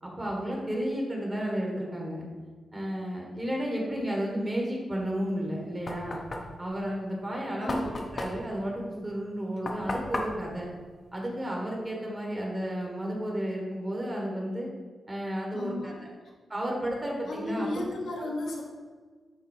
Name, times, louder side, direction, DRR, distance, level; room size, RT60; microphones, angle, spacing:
voice 1, 0.0-2.3 2.7-6.2 6.6-7.8 8.1-10.7 11.1-14.7 15.1-16.1 16.5-17.7 18.2-18.3, equal, 20° right, -2 dB, 1.4 m, -32 dB
Knock, 5.3-11.8, left 2 dB, 30° left, 0.8 m, -37 dB
voice 2, 7.6-7.9 15.5-16.0 17.3-18.6, left 2 dB, 85° left, -2 dB, 1.4 m, -34 dB
10.5 x 3.7 x 4.4 m, 1.4 s
wide cardioid pair, 175°, 0 cm